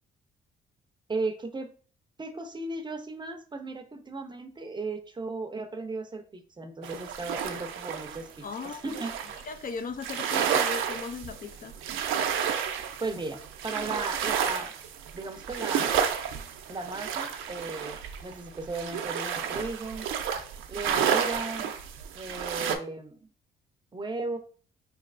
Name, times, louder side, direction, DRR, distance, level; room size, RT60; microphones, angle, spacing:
voice 1, 1.1-1.7 2.2-9.2 13.0-14.7 15.1-15.9 16.7-20.1 20.7-21.7 22.1-23.2 23.9-24.4, right 3 dB, 25° right, 7 dB, 0.6 m, -36 dB
sound 1, 6.8-9.5 10.0-22.8, right 8 dB, 85° right, 0.5 m, -31 dB
voice 2, 8.4-9.0 9.4-11.7, left 5 dB, 45° left, 9 dB, 0.4 m, -37 dB
4.5 x 3.1 x 2.5 m, 0.41 s
cardioid pair, 90°, 20 cm